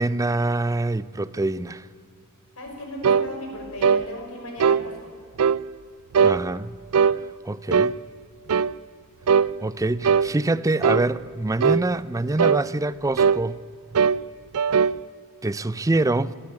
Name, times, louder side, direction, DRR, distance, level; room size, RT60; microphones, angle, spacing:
voice 1, 0.0-1.9 6.2-6.8 7.5-7.9 9.6-13.6 15.4-16.4, right 2 dB, 15° right, 0.5 m, -25 dB
voice 2, 2.6-5.0, left 1 dB, 70° left, 5.6 m, -36 dB
sound 1, 3.0-3.3 3.8-4.1 4.6-4.8 5.4-5.6 6.1-6.4 6.9-7.2 7.7-8.0 8.5-8.7 9.3-9.5 10.0-10.3 10.8-11.1 11.6-11.9 12.4-12.6 13.2-13.4 14.0-14.2 14.5-15.0, right 6 dB, 75° right, 0.4 m, -19 dB
24.5 x 13.0 x 10.0 m
head